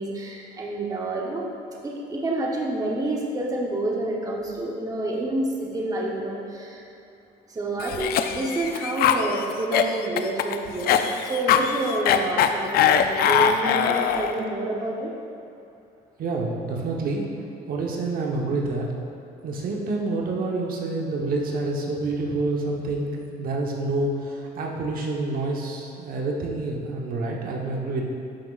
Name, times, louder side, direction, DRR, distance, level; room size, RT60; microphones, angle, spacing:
voice 1, 0.0-1.5 1.8-6.8 7.5-15.1, right 2 dB, 20° right, -2 dB, 0.9 m, -28 dB
Cough, 7.8-14.4, left 8 dB, 65° left, 0.4 m, -22 dB
voice 2, 16.2-17.3 17.7-18.9 19.4-28.1, right 2 dB, 60° right, -1 dB, 1.1 m, -28 dB
11.5 x 6.1 x 2.5 m, 2.6 s
cardioid pair, 110°, 17 cm